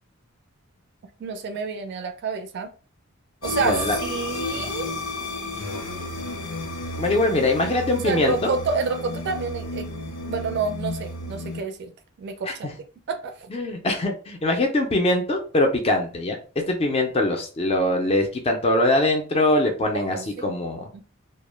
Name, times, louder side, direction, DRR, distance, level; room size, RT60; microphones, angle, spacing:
voice 1, 1.2-2.7 3.4-4.9 8.0-9.9 10.3-11.9 12.2-12.7 13.1-13.3 19.9-20.5 20.9-21.0, right 4 dB, 55° right, 0.3 m, -28 dB
sound 1, 3.4-11.6, left 2 dB, 75° left, 0.7 m, -32 dB
voice 2, 3.5-4.0 7.0-8.5 12.5-12.7 13.5-16.4 16.7-20.9, left 1 dB, 30° left, 0.4 m, -22 dB
2.1 x 2.0 x 3.1 m
head